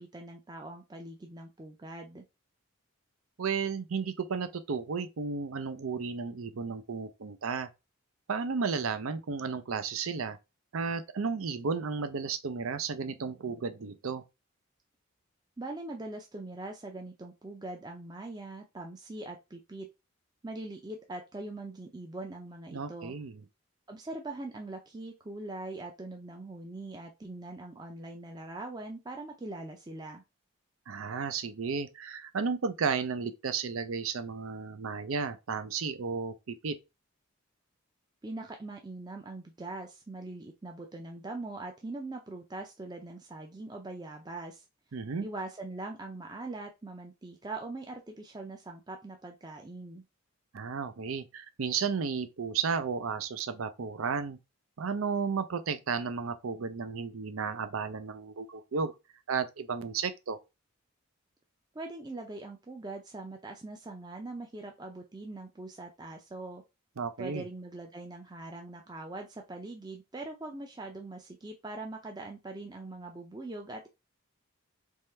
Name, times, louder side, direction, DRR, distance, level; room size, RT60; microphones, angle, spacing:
voice 1, 0.0-2.2 15.6-19.9 20.4-23.1 23.9-30.2 38.2-44.6 45.2-50.0 61.7-66.6 67.2-73.9, right 2 dB, 20° right, 0.5 m, -42 dB
voice 2, 3.4-7.7 8.3-10.4 10.7-14.2 22.7-23.4 30.9-36.7 44.9-45.3 50.5-54.4 54.8-58.9 59.3-60.4 67.0-67.4, right 5 dB, 80° right, 0.6 m, -33 dB
3.6 x 3.2 x 4.3 m
head